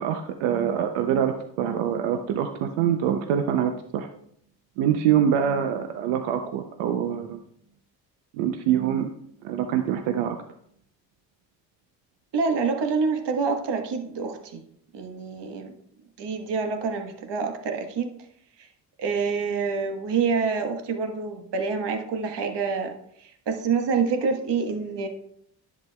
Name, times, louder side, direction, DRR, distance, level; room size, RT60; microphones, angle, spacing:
voice 1, 0.0-4.1 4.8-7.4 8.3-9.1 9.4-10.4, right 9 dB, 85° right, 6 dB, 0.7 m, -25 dB
voice 2, 12.3-14.6 14.9-15.7 16.2-18.1 19.0-22.9 23.2-25.1, right 5 dB, 60° right, 5 dB, 1.3 m, -27 dB
10.5 x 8.0 x 2.3 m, 0.68 s
hypercardioid pair, 45°, 47 cm